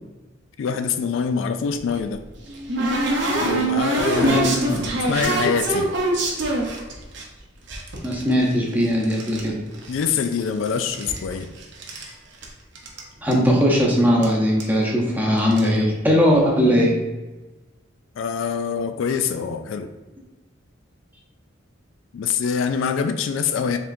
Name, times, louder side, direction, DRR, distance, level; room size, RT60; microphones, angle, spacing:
voice 1, 0.6-2.3 3.4-5.9 9.9-11.5 15.2-16.0 18.2-19.9 22.1-23.8, left 6 dB, 75° left, 8 dB, 0.3 m, -25 dB
sound 1, 1.8-7.2 7.7-9.5 9.7-10.5 10.8-12.1 12.4-12.5 12.7-13.0 13.3-13.4 14.2-14.3 14.6-14.8 15.4-15.7, right 2 dB, 60° right, 0.8 m, -25 dB
voice 2, 4.2-4.8 8.0-9.5 13.2-16.9, equal, 10° right, -3 dB, 0.8 m, -19 dB
4.8 x 3.6 x 2.6 m, 1.1 s
head